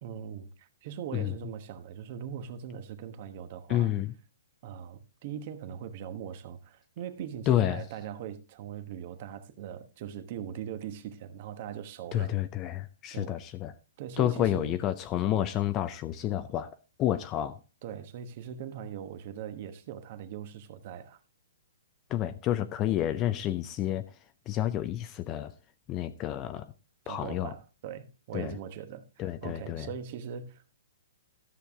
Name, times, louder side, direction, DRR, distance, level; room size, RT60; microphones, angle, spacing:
voice 1, 0.0-3.9 4.6-12.4 13.1-13.4 14.0-14.8 17.8-21.2 27.0-30.8, right 8 dB, 40° right, 1.2 m, -40 dB
voice 2, 3.7-4.1 7.5-7.8 12.1-13.7 14.2-16.7 17.0-17.6 22.1-24.1 24.5-25.5 25.9-26.7 27.1-27.5 28.3-28.6 29.2-29.9, left 12 dB, 25° left, 0.5 m, -29 dB
13.0 x 6.9 x 3.6 m
hypercardioid pair, 150°, 0 cm